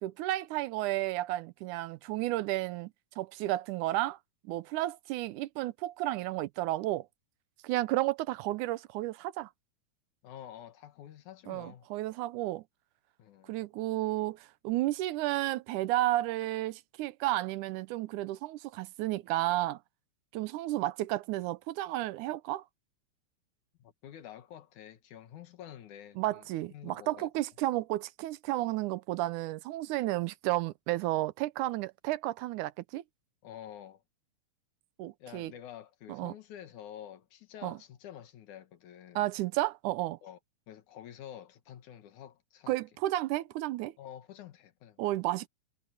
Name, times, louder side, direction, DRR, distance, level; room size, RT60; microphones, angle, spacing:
voice 1, 0.0-4.2 4.4-7.1 7.6-9.5 11.5-12.6 13.5-19.8 20.3-22.6 26.2-33.0 35.0-35.5 36.1-36.3 37.6-37.8 39.2-40.2 42.7-43.9 45.0-45.5, right 16 dB, 90° right, 2.2 m, -32 dB
voice 2, 10.2-11.9 13.2-13.6 23.8-27.3 33.4-34.0 35.2-39.2 40.2-40.4 40.7-42.8 44.0-45.0, left 10 dB, 80° left, 2.9 m, -49 dB
omnidirectional pair, 3.4 m